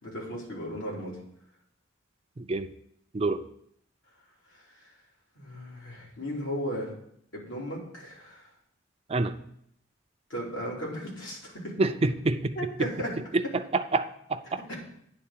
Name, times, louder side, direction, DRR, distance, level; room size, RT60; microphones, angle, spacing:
voice 1, 0.0-1.2 4.5-4.9 5.3-6.9 7.3-8.5 10.3-11.8 12.5-13.1 14.5-14.8, equal, 80° left, -4 dB, 3.2 m, -36 dB
voice 2, 2.4-2.7 3.1-3.4 9.1-9.3 11.8-12.5 13.3-14.6, right 3 dB, 30° right, 7 dB, 0.5 m, -27 dB
9.9 x 3.8 x 7.3 m, 0.71 s
head